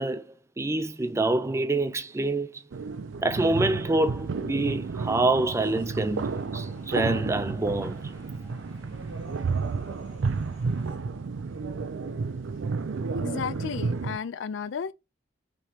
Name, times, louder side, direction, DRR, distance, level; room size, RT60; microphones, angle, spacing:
voice 1, 0.0-2.6 3.2-8.0, right 2 dB, 15° right, 0.3 m, -26 dB
sound 1, 2.7-14.2, right 4 dB, 80° right, 0.5 m, -31 dB
sound 2, 5.0-11.0, left 1 dB, 30° left, 1.8 m, -51 dB
voice 2, 13.1-14.9, left 6 dB, 70° left, 0.4 m, -33 dB
4.8 x 3.0 x 2.8 m
head